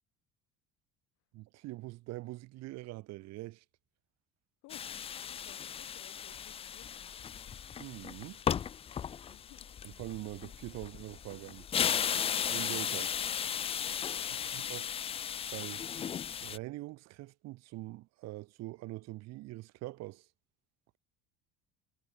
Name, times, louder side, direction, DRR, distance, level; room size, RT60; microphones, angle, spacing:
voice 1, 1.3-3.6 7.8-8.4 10.0-11.7 12.2-13.1 14.5-14.9 15.5-15.9 16.4-20.3, right 18 dB, 60° right, 2.5 m, -43 dB
voice 2, 4.6-5.0 5.3-7.3 9.3-9.8 12.9-13.1 14.1-14.9, left 21 dB, 65° left, 4.7 m, -59 dB
sound 1, 4.7-16.6, left 8 dB, 20° left, 0.4 m, -36 dB
cardioid pair, 180°, 31 cm